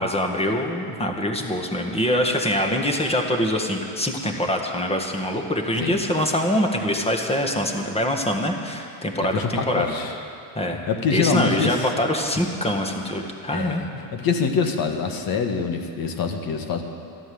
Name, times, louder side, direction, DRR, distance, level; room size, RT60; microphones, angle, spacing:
voice 1, 0.0-9.9 10.6-10.8 11.1-13.8, left 1 dB, 15° left, 3 dB, 1.7 m, -24 dB
voice 2, 9.3-10.1 10.7-11.9 13.5-13.9 14.1-16.8, left 5 dB, 50° left, 5 dB, 1.7 m, -25 dB
13.5 x 11.5 x 7.9 m, 2.6 s
supercardioid pair, 105°, 46 cm